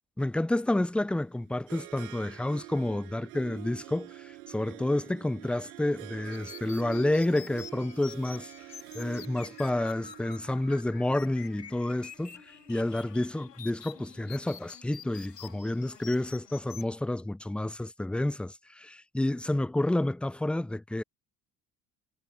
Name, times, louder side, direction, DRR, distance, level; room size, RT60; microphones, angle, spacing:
voice 1, 0.2-8.5 8.9-12.4 12.7-21.0, left 1 dB, ahead, 0.4 m, -29 dB
Harp, 1.0-13.2, right 19 dB, 75° right, 5.9 m, -47 dB
sound 1, 6.3-16.8, left 7 dB, 90° left, 3.6 m, -48 dB
hypercardioid pair, 60°, 47 cm